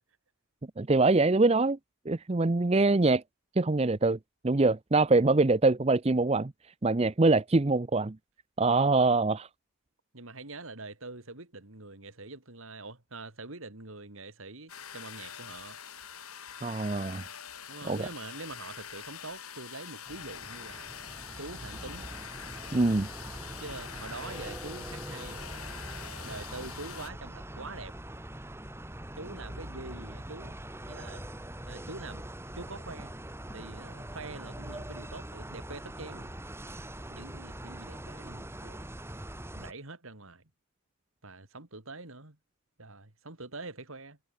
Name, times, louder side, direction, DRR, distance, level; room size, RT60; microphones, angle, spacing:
voice 1, 0.8-1.8 2.1-3.2 3.6-4.2 4.4-6.5 6.8-8.2 8.6-9.5 16.6-17.2 17.8-18.1 22.7-23.1, right 3 dB, 30° right, 0.6 m, -24 dB
voice 2, 10.1-15.8 17.7-20.9 21.4-22.1 23.5-25.4 26.2-28.0 29.2-30.5 30.9-31.2 31.7-32.2 32.5-33.1 33.5-36.3 37.1-38.9 39.5-40.5 41.2-42.4 42.8-44.2, right 3 dB, 70° right, 2.8 m, -44 dB
sound 1, 14.7-27.1, left 8 dB, 85° left, 7.7 m, -44 dB
sound 2, 20.1-39.7, right 1 dB, 10° right, 1.8 m, -43 dB
head